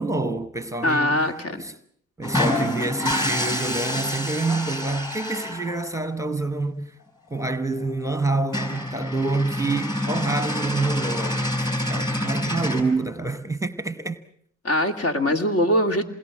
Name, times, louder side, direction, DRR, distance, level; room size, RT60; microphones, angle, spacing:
voice 1, 0.0-1.8 2.2-7.0 7.3-14.2, right 3 dB, 10° right, 1.1 m, -27 dB
voice 2, 0.8-1.6 14.6-16.1, left 1 dB, 55° left, 2.8 m, -22 dB
sound 1, 2.2-5.9 7.4-7.5 7.8-7.9 8.2-8.3 8.5-12.8, left 1 dB, 15° left, 5.7 m, -27 dB
28.0 x 21.0 x 7.5 m
cardioid pair, 90°, 30 cm